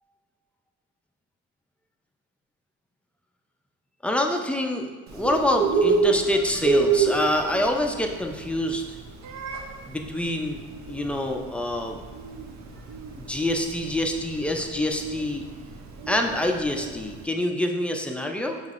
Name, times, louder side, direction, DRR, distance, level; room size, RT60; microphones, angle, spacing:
voice 1, 4.0-8.8 9.9-10.6 10.9-12.0 13.2-15.4 16.1-18.6, left 1 dB, 5° left, 3 dB, 0.4 m, -26 dB
Bird, 5.1-17.2, right 4 dB, 65° right, 0.6 m, -28 dB
5.7 x 3.1 x 2.5 m, 1.5 s
cardioid pair, 90°, 30 cm